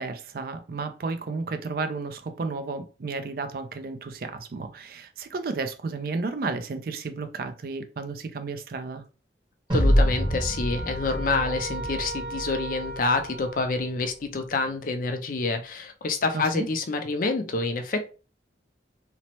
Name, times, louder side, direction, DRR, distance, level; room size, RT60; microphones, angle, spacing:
voice 1, 0.0-9.0 16.3-16.7, right 4 dB, 55° right, 0.4 m, -32 dB
voice 2, 9.7-18.1, left 3 dB, 50° left, 0.4 m, -27 dB
sound 1, 9.7-13.0, equal, 30° right, 1.0 m, -26 dB
sound 2, 9.7-14.1, right 2 dB, 75° right, 1.5 m, -38 dB
2.9 x 2.0 x 2.9 m
head